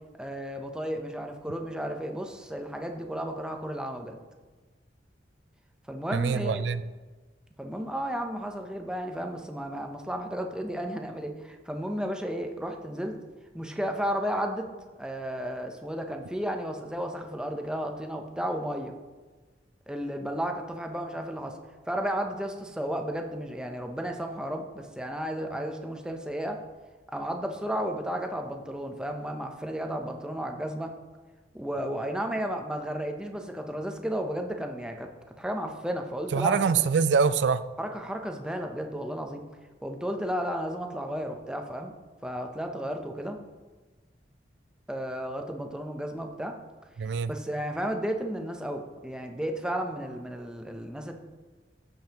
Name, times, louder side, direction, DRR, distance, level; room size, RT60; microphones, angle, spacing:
voice 1, 0.2-4.2 5.9-6.6 7.6-13.2 13.5-14.7 15.0-18.9 19.9-21.6 21.9-26.6 27.1-30.9 31.5-35.1 35.4-36.6 37.8-39.4 39.8-41.9 42.2-43.4 44.9-46.5 47.3-51.1, equal, 5° right, 4 dB, 0.7 m, -33 dB
voice 2, 6.1-6.8 36.3-37.6 47.0-47.3, right 5 dB, 75° right, 15 dB, 0.4 m, -24 dB
15.0 x 5.3 x 2.9 m, 1.3 s
head